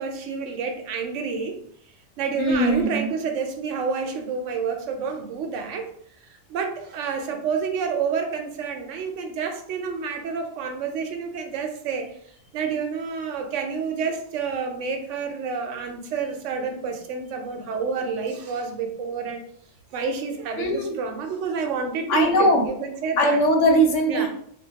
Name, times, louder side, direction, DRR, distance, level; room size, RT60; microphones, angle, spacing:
voice 1, 0.0-1.6 2.2-5.9 6.5-12.1 12.5-19.4 19.9-23.4 24.1-24.3, right 5 dB, 85° right, 5 dB, 0.9 m, -29 dB
voice 2, 2.4-3.1 20.6-21.0 22.1-22.7 23.2-24.3, equal, 80° left, 3 dB, 1.0 m, -20 dB
2.2 x 2.2 x 3.8 m, 0.65 s
omnidirectional pair, 1.2 m